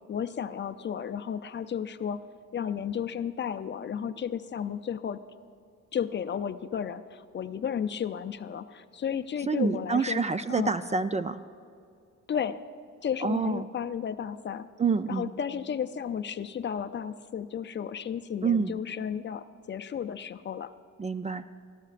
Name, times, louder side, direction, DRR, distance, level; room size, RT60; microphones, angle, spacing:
voice 1, 0.1-2.2 2.5-5.2 5.9-10.2 10.5-10.8 12.3-12.6 13.0-14.7 15.1-20.7, left 8 dB, 40° left, 11 dB, 0.5 m, -33 dB
voice 2, 9.5-11.4 13.2-13.7 14.8-15.3 18.4-18.7 21.0-21.4, right 5 dB, 25° right, 12 dB, 0.3 m, -27 dB
23.0 x 13.5 x 2.5 m, 2.4 s
cardioid pair, 90°, 30 cm